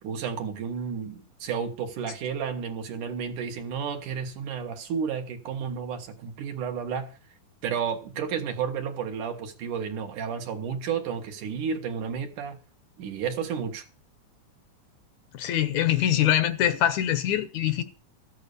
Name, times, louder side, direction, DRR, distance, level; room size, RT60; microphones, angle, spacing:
voice 1, 0.0-7.1 7.6-12.6 13.0-13.8, right 7 dB, 75° right, 3.2 m, -32 dB
voice 2, 15.3-17.8, left 11 dB, 70° left, 2.1 m, -24 dB
14.0 x 8.3 x 6.8 m
omnidirectional pair, 3.7 m